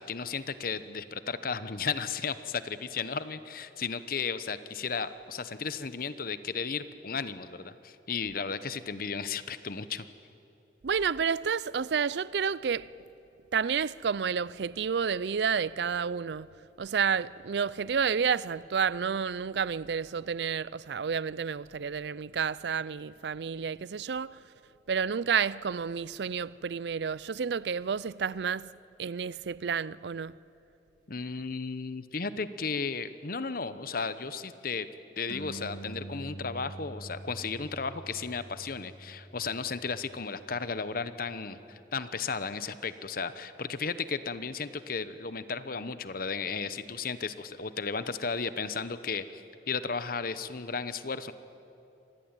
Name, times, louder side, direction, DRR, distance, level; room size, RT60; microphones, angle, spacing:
voice 1, 0.0-10.0 31.1-34.9 35.2-51.3, left 5 dB, 55° left, 0.9 m, -34 dB
voice 2, 10.8-12.9 13.5-16.5 16.8-24.4 24.9-28.7 29.0-30.3, right 6 dB, 70° right, 0.5 m, -30 dB
sound 1, 35.3-42.1, right 1 dB, 75° left, 2.5 m, -46 dB
26.0 x 20.0 x 9.0 m
head